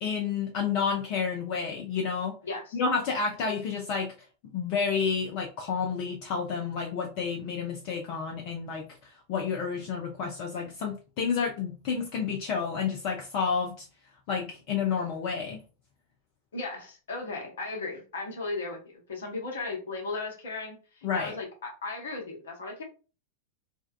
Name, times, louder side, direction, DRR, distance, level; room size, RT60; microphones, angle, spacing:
voice 1, 0.0-2.4 2.7-4.1 4.5-13.9 14.3-15.6 21.0-21.3, left 6 dB, 45° left, 0 dB, 0.5 m, -30 dB
voice 2, 2.4-2.8 16.5-22.8, left 3 dB, 65° left, 1 dB, 0.9 m, -36 dB
3.5 x 2.2 x 2.2 m, 0.34 s
figure-of-eight pair, 90°, 0 cm